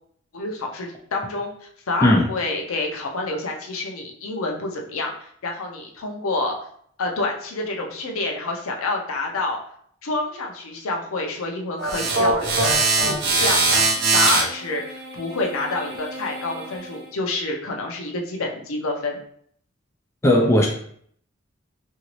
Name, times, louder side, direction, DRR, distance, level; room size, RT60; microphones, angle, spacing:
voice 1, 0.3-6.5 7.0-9.6 10.0-19.2, left 2 dB, 80° left, 1 dB, 0.6 m, -28 dB
sound 1, 11.8-17.0, right 3 dB, 50° right, 0.6 m, -22 dB
voice 2, 20.2-20.7, left 1 dB, 15° left, -1 dB, 0.3 m, -16 dB
2.9 x 2.6 x 3.0 m, 0.63 s
head